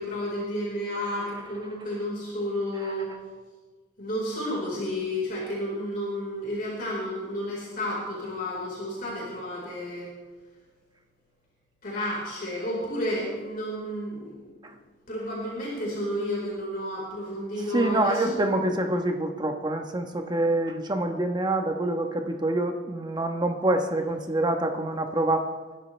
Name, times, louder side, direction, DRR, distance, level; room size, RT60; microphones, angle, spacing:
voice 1, 0.0-3.1 4.0-10.1 11.8-14.3 15.1-18.3, left 1 dB, 45° left, -5 dB, 4.6 m, -31 dB
voice 2, 17.7-25.5, right 1 dB, 20° right, 4 dB, 1.2 m, -26 dB
29.5 x 12.5 x 3.4 m, 1.4 s
head